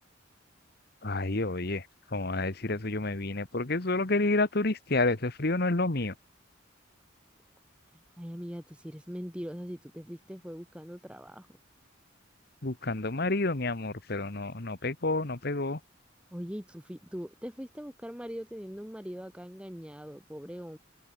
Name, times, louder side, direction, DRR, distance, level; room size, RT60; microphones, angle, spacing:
voice 1, 1.0-1.9 2.1-6.1 12.6-15.8, left 2 dB, 50° left, 1.4 m, -29 dB
voice 2, 8.2-11.6 16.3-20.8, equal, 5° right, 1.8 m, -41 dB
head